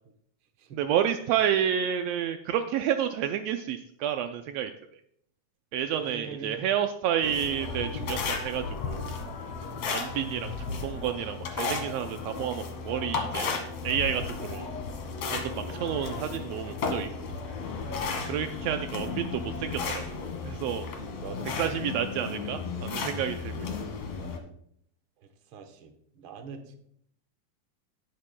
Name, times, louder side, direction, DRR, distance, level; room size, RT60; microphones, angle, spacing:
voice 1, 0.7-4.7 5.7-9.1 9.9-13.6 13.8-14.7 15.3-17.1 18.3-20.9 21.6-23.7, right 9 dB, 85° right, 7 dB, 1.4 m, -30 dB
voice 2, 5.8-6.7 9.6-9.8 18.0-18.2 21.0-21.7 25.2-26.8, right 5 dB, 60° right, 6 dB, 1.4 m, -43 dB
sound 1, 7.2-24.4, left 4 dB, 65° left, 2.6 m, -34 dB
18.5 x 9.0 x 2.2 m, 0.68 s
omnidirectional pair, 3.5 m